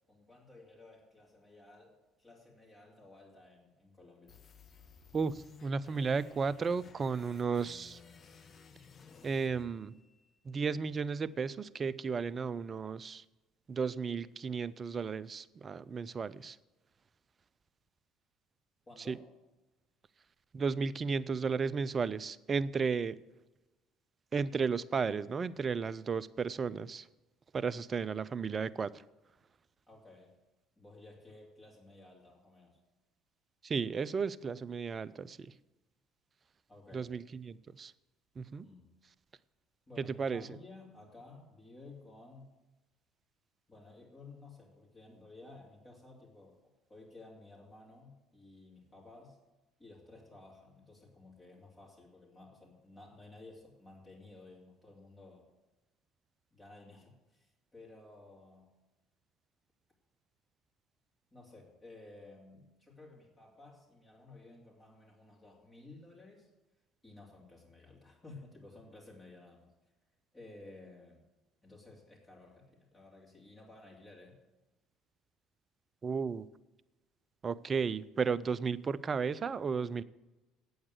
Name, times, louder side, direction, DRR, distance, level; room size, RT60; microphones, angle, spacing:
voice 1, 0.1-4.3 18.9-19.2 29.9-30.3 30.8-32.8 36.7-37.1 38.6-38.9 39.9-42.5 43.7-46.6 46.9-49.4 49.8-55.5 56.5-58.7 61.3-66.5 67.0-69.7 70.3-71.2 71.6-74.4, left 2 dB, 20° left, -4 dB, 2.9 m, -55 dB
sound 1, 4.3-10.3, left 5 dB, 40° left, 1.1 m, -57 dB
voice 2, 5.1-8.0 9.2-9.9 10.5-13.2 13.7-16.6 19.1-19.2 20.5-23.2 24.3-27.1 27.5-29.0 33.6-35.5 36.9-37.9 38.4-38.6 40.0-40.5 76.0-76.5 77.4-80.0, right 5 dB, 35° right, 18 dB, 0.4 m, -34 dB
8.7 x 8.0 x 8.0 m, 1.1 s
hypercardioid pair, 60°, 0 cm